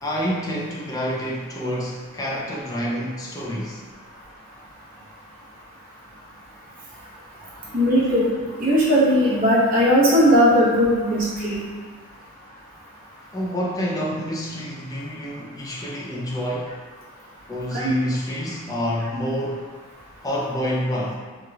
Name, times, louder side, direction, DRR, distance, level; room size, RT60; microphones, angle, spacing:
voice 1, 0.0-3.8 13.3-16.7 17.5-19.6 20.2-21.1, equal, 15° left, -4 dB, 0.4 m, -28 dB
voice 2, 7.7-8.3 8.6-11.6 17.7-17.9, equal, 40° right, -9 dB, 0.9 m, -18 dB
3.0 x 3.0 x 2.3 m, 1.4 s
head